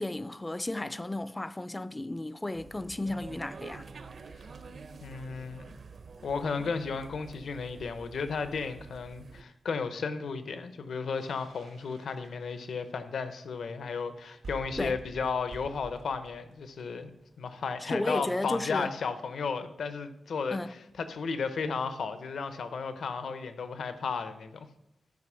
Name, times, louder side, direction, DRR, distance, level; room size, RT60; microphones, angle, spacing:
voice 1, 0.0-3.9 14.8-14.9 17.8-18.9 20.5-20.7, left 1 dB, 15° left, 0.3 m, -33 dB
sound 1, 2.5-9.4, right 4 dB, 50° right, 0.6 m, -48 dB
voice 2, 5.0-5.7 6.2-17.1 17.4-20.6 21.0-24.7, left 5 dB, 80° left, 0.8 m, -34 dB
sound 2, 11.2-13.0 13.7-13.8 14.0-14.1 14.3-17.4, right 3 dB, 80° right, 1.6 m, -48 dB
13.0 x 5.0 x 6.2 m
wide cardioid pair, 170°, 0 cm